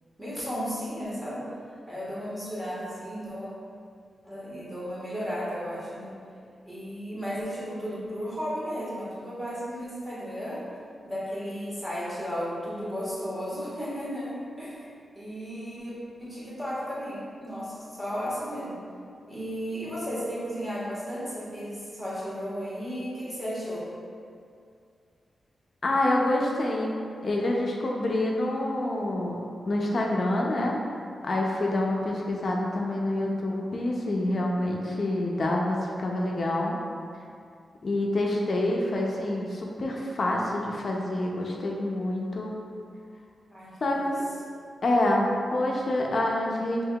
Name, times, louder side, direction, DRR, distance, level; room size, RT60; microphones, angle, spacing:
voice 1, 0.2-1.5 1.9-3.5 4.2-6.1 6.7-10.6 11.0-14.8 15.1-18.8 19.3-23.9 43.5-44.1, equal, 15° right, -9 dB, 1.4 m, -34 dB
voice 2, 25.8-27.0 27.2-30.8 31.2-36.7 37.8-42.5 43.8-44.2 44.8-46.8, left 1 dB, 45° left, -2 dB, 0.5 m, -27 dB
5.4 x 3.5 x 2.3 m, 2.3 s
wide cardioid pair, 135°, 0 cm